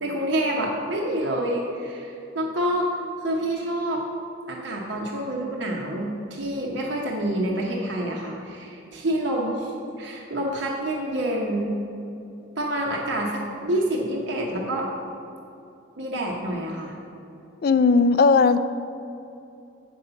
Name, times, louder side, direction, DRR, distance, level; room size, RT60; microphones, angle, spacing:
voice 1, 0.0-2.9 3.2-4.0 4.5-9.7 10.0-11.7 12.6-14.9 16.0-16.9, right 1 dB, 65° right, -2 dB, 0.9 m, -27 dB
voice 2, 17.6-18.6, left 4 dB, 50° left, 13 dB, 0.3 m, -17 dB
7.8 x 5.5 x 6.9 m, 2.7 s
head